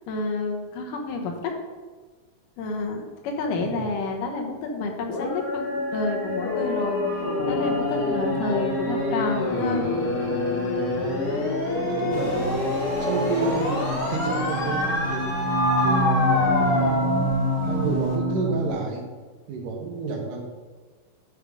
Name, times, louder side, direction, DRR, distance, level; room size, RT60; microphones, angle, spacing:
voice 1, 0.1-1.5 2.6-7.0 7.5-9.8, left 3 dB, 80° left, 2 dB, 2.6 m, -29 dB
sound 1, 5.1-18.7, left 1 dB, 55° left, 1.6 m, -25 dB
voice 2, 11.8-12.7 13.0-15.3 15.8-17.3 17.6-19.0 19.5-20.4, right 4 dB, 90° right, 1 dB, 2.8 m, -30 dB
sound 2, 12.1-18.2, right 1 dB, 30° right, 0.6 m, -39 dB
9.9 x 3.6 x 5.2 m, 1.4 s
omnidirectional pair, 3.7 m